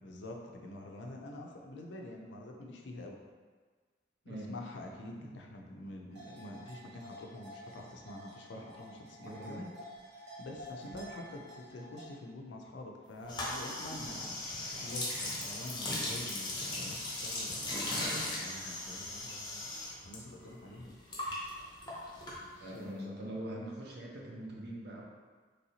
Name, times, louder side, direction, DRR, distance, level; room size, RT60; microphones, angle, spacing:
voice 1, 0.0-3.2 4.2-9.7 10.1-19.7 20.0-21.0 22.6-23.3, left 1 dB, 80° left, 1 dB, 0.4 m, -47 dB
sound 1, 6.1-12.0, equal, 80° right, 0.9 m, -50 dB
voice 2, 9.2-9.6 10.8-11.0 22.6-25.0, right 1 dB, 60° right, -2 dB, 0.6 m, -43 dB
sound 2, 13.3-20.2 20.4-22.8, left 1 dB, 25° left, 0.6 m, -38 dB
3.1 x 2.7 x 2.8 m, 1.4 s
head